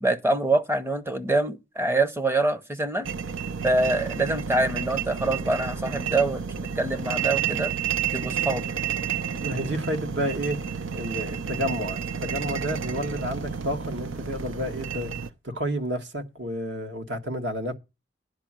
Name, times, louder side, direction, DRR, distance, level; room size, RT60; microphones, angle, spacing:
voice 1, 0.0-3.1 3.6-7.7 8.1-8.6, right 2 dB, 15° right, 0.7 m, -25 dB
sound 1, 3.0-15.3, right 7 dB, 90° right, 0.7 m, -31 dB
voice 2, 9.4-10.6 10.9-15.1 15.4-17.7, equal, 65° right, 1.6 m, -30 dB
10.5 x 5.3 x 7.4 m
head